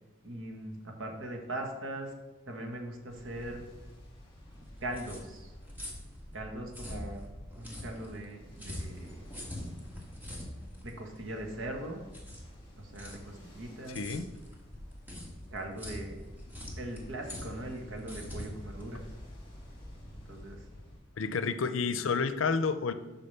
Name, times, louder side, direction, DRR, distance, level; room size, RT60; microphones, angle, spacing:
voice 1, 0.2-2.1 2.5-3.7 4.5-5.5 6.3-7.3 7.6-9.2 10.8-12.0 12.8-14.1 15.5-19.1 20.0-20.7 21.3-21.4 21.8-21.9, right 1 dB, 85° right, 2 dB, 1.4 m, -41 dB
Ocean, 3.1-21.0, equal, 25° left, 2.0 m, -51 dB
sound 1, 4.5-19.7, left 1 dB, 10° right, 1.5 m, -45 dB
voice 2, 13.9-14.3 21.2-22.9, left 5 dB, 85° left, 12 dB, 0.5 m, -30 dB
6.7 x 4.9 x 6.7 m, 1.1 s
head